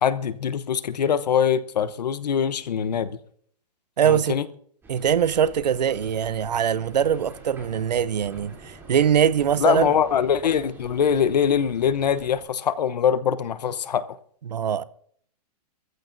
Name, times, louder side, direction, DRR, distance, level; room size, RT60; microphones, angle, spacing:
voice 1, 0.0-3.2 4.0-4.5 9.6-14.1, left 8 dB, 80° left, 1.1 m, -23 dB
voice 2, 4.0-4.4 4.9-9.9 14.5-14.8, right 8 dB, 90° right, 0.8 m, -22 dB
sound 1, 4.8-12.4, right 1 dB, 10° right, 3.3 m, -46 dB
25.0 x 14.5 x 2.7 m
hypercardioid pair, 150°, 21 cm